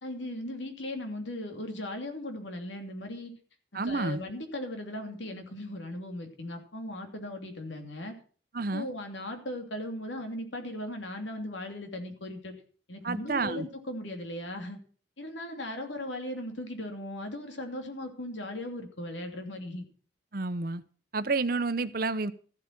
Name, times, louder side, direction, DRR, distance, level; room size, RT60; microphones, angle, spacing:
voice 1, 0.0-3.3 3.8-8.1 8.6-12.5 12.9-14.8 15.2-19.9, left 1 dB, 85° left, 2.9 m, -38 dB
voice 2, 3.7-4.2 8.5-8.9 13.0-13.7 20.3-20.8 21.1-22.3, right 3 dB, 55° right, 0.9 m, -30 dB
14.5 x 8.2 x 6.0 m
head